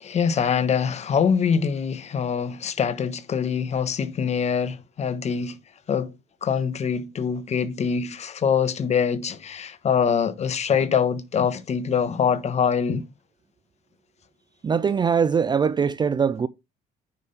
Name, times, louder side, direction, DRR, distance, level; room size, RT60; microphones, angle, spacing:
voice 1, 0.0-5.6 5.9-6.1 6.4-13.0, left 7 dB, 40° left, 1.1 m, -24 dB
voice 2, 14.6-16.5, right 6 dB, 25° right, 0.4 m, -22 dB
9.5 x 5.6 x 3.3 m
cardioid pair, 110°, 17 cm